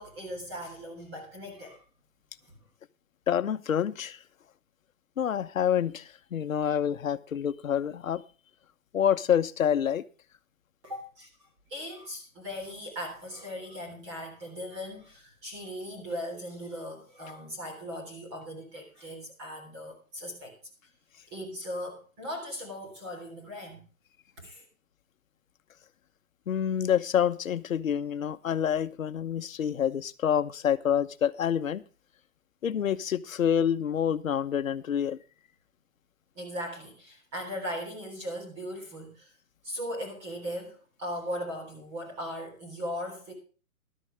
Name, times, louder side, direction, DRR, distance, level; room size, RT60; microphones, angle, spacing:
voice 1, 0.0-1.8 10.8-11.3 11.7-20.5 21.3-23.9 24.4-24.7 36.4-39.3 39.6-43.3, equal, 20° right, 1 dB, 3.6 m, -38 dB
voice 2, 3.3-4.2 5.2-8.2 8.9-10.0 26.5-31.8 32.6-35.2, left 9 dB, 65° left, 11 dB, 1.1 m, -27 dB
14.0 x 12.5 x 3.3 m, 0.36 s
hypercardioid pair, 175°, 42 cm